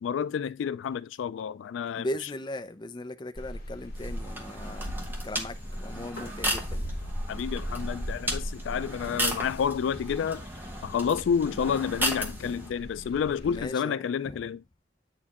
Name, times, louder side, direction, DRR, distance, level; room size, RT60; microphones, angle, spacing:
voice 1, 0.0-2.1 7.3-10.4 10.8-14.6, left 7 dB, 90° left, 0.3 m, -29 dB
voice 2, 2.0-4.9 5.2-5.6 5.8-6.9 9.1-9.5 12.4-12.6 13.4-14.4, left 1 dB, 25° left, 0.5 m, -38 dB
sound 1, 3.4-13.7, equal, 55° left, 2.0 m, -38 dB
sound 2, 3.9-12.7, right 1 dB, 10° right, 1.0 m, -35 dB
8.3 x 4.3 x 2.9 m
head